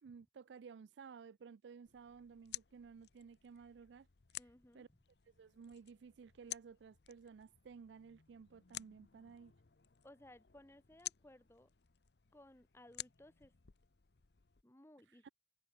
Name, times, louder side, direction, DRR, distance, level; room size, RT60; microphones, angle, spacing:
voice 1, 0.0-4.1 4.7-4.9 5.3-9.5 15.1-15.3, right 6 dB, 85° right, 0.4 m, -55 dB
sound 1, 1.9-14.6, left 13 dB, 70° left, 0.8 m, -53 dB
voice 2, 4.4-5.0 10.0-11.7 12.3-13.5 14.6-15.3, left 1 dB, 15° left, 1.0 m, -61 dB
head